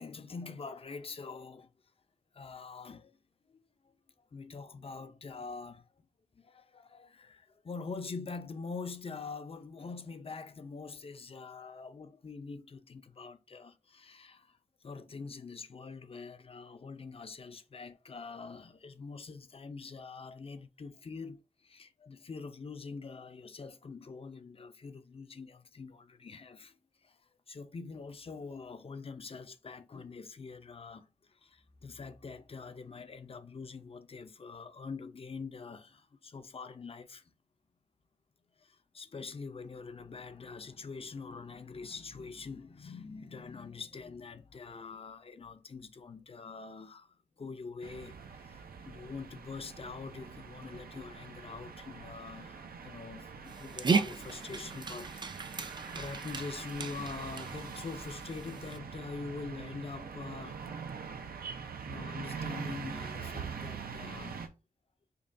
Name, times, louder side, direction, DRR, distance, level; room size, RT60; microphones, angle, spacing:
voice 1, 0.0-1.7 2.3-3.2 3.5-3.6 4.3-5.9 6.3-14.6 14.8-27.2 27.5-37.2 38.6-60.6 61.8-64.5, left 4 dB, 40° left, 0.5 m, -44 dB
sound 1, 47.8-64.5, right 6 dB, 80° right, 0.5 m, -44 dB
Dog, 53.5-58.8, right 4 dB, 30° right, 0.3 m, -36 dB
5.1 x 2.2 x 2.6 m
wide cardioid pair, 75°, 15 cm